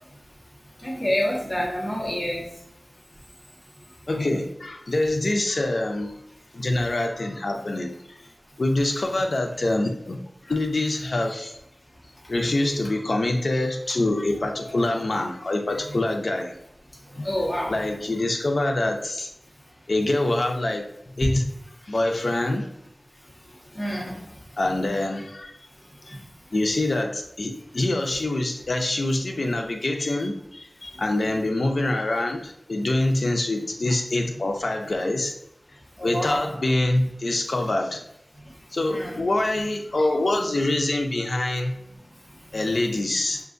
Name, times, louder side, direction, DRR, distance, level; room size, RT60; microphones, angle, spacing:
voice 1, 0.8-2.5 17.2-17.8 23.7-24.2 36.0-36.5 38.9-39.2, equal, 30° left, -3 dB, 1.3 m, -27 dB
voice 2, 4.1-6.1 6.5-8.2 8.6-11.5 12.3-16.6 17.2-17.3 17.7-19.3 19.9-20.9 21.2-21.5 21.9-22.7 24.6-25.6 26.1-26.2 26.5-35.3 36.0-38.0 38.7-41.7 42.5-43.4, left 2 dB, 80° left, 4 dB, 0.6 m, -25 dB
5.8 x 2.5 x 2.5 m, 0.81 s
wide cardioid pair, 45°, 0 cm